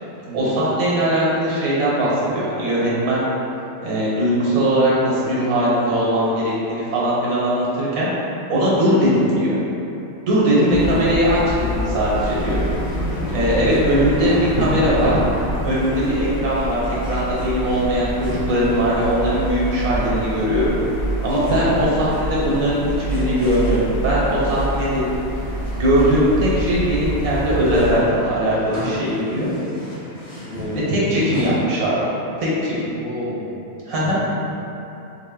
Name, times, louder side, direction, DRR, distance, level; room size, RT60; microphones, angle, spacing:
voice 1, 0.3-3.2 3.8-8.1 8.5-9.6 10.2-12.6 13.3-15.2 15.6-20.7 21.2-22.8 23.1-25.0 25.7-29.5 30.9-32.1 32.4-32.7 33.9-34.2, equal, 90° right, -7 dB, 1.3 m, -20 dB
sound 1, 10.7-28.0, right 1 dB, 90° left, 1.1 m, -27 dB
sound 2, 12.0-31.6, left 1 dB, 30° left, 0.8 m, -34 dB
voice 2, 13.7-14.0 21.8-22.1 30.5-31.0 33.0-33.6, right 1 dB, 55° right, -5 dB, 0.7 m, -31 dB
3.7 x 2.1 x 3.6 m, 2.9 s
omnidirectional pair, 1.4 m